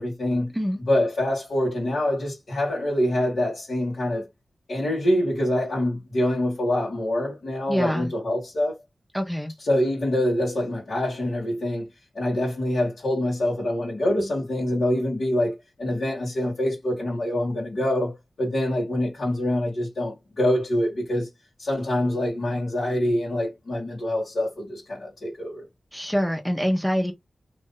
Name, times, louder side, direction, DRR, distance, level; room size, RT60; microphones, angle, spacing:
voice 1, 0.0-0.5 0.9-4.3 4.7-8.8 9.6-11.9 12.1-21.3 21.6-25.6, left 1 dB, 80° left, 1.7 m, -25 dB
voice 2, 7.7-8.1 9.1-9.5 25.9-27.1, equal, ahead, 0.7 m, -25 dB
3.1 x 2.6 x 3.7 m
cardioid pair, 55°, 0 cm